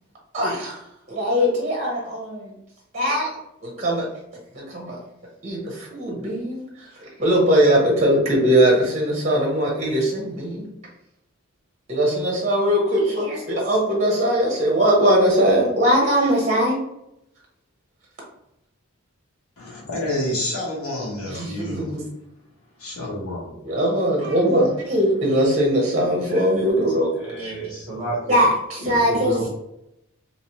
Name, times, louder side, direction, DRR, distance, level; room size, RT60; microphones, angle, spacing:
voice 1, 0.3-0.7 1.1-2.5 2.9-3.3 3.6-4.1 4.5-5.0 5.4-6.9 7.2-10.7 11.9-16.8 21.3-22.0 23.6-27.1 27.4-27.5 28.3-29.5, equal, 30° right, -2 dB, 0.8 m, -20 dB
voice 2, 19.6-21.9 22.8-23.6, left 1 dB, 80° left, -3 dB, 1.2 m, -29 dB
voice 3, 27.2-28.4 28.8-29.5, right 2 dB, 5° right, -11 dB, 1.2 m, -30 dB
3.1 x 2.9 x 3.0 m, 0.83 s
head